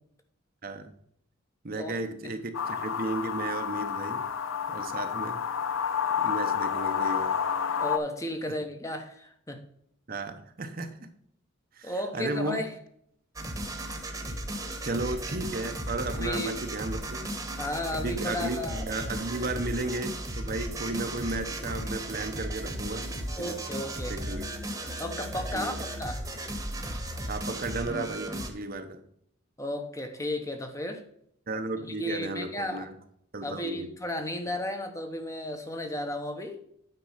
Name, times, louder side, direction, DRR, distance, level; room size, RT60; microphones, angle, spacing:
voice 1, 0.6-0.9 1.6-4.2 4.7-5.4 6.2-7.4 10.1-11.1 11.8-12.6 14.8-17.2 17.9-23.1 23.4-23.5 24.0-24.5 25.5-25.7 27.3-29.0 31.5-32.9 33.3-33.9, right 2 dB, 45° right, 0.9 m, -34 dB
sound 1, 2.5-8.0, left 7 dB, 80° left, 0.7 m, -29 dB
voice 2, 7.8-9.6 11.8-12.7 16.1-16.5 17.5-18.8 23.3-24.2 25.0-26.2 29.6-31.0 32.0-32.9 33.4-36.6, left 1 dB, 15° left, 1.0 m, -34 dB
sound 2, 13.4-28.5, right 1 dB, 15° right, 1.2 m, -35 dB
9.1 x 4.7 x 5.6 m
head